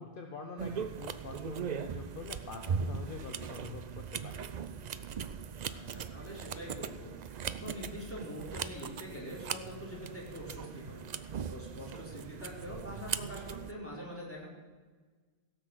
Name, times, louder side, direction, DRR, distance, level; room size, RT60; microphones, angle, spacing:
voice 1, 0.0-4.5, left 4 dB, 55° left, 3 dB, 1.2 m, -45 dB
sound 1, 0.6-13.7, right 6 dB, 50° right, 0.6 m, -39 dB
voice 2, 5.6-14.5, equal, 10° left, -5 dB, 4.3 m, -44 dB
16.5 x 6.3 x 8.0 m, 1.4 s
omnidirectional pair, 1.1 m